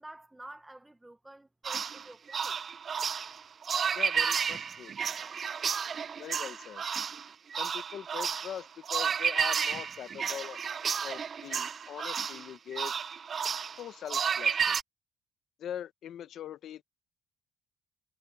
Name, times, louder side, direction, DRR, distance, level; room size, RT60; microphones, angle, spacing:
voice 1, 0.0-2.6, right 1 dB, 10° right, 1.1 m, -49 dB
sound 1, 1.6-14.8, right 7 dB, 35° right, 0.5 m, -32 dB
voice 2, 3.9-4.9 6.2-6.8 7.6-10.6 11.0-12.9 13.8-14.8 15.6-16.8, left 10 dB, 60° left, 0.8 m, -42 dB
cardioid pair, 140°, 0 cm